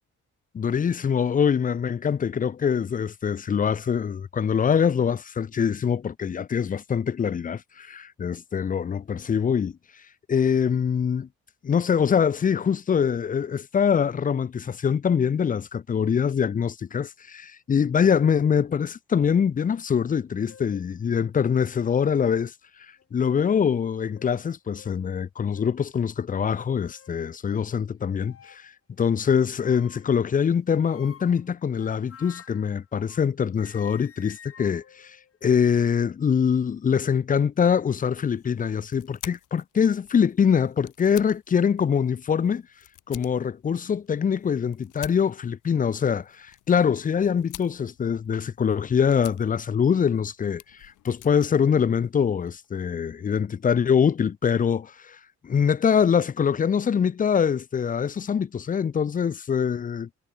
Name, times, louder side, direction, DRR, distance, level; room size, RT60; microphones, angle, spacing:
voice 1, 0.5-9.8 10.3-11.3 11.6-22.5 23.1-28.7 29.0-35.2 35.4-42.6 43.1-55.2 55.4-60.1, left 7 dB, 30° left, 0.5 m, -24 dB
sound 1, 20.5-20.9 21.6-21.7 23.0-23.7 24.2-24.3 24.8-24.9 25.5-25.8 26.5-27.2 28.2-28.7 29.6-30.2 30.8-33.3 33.6-35.9, left 8 dB, 50° left, 2.7 m, -51 dB
sound 2, 38.1-52.7, left 15 dB, 85° left, 3.6 m, -49 dB
cardioid pair, 90°, 30 cm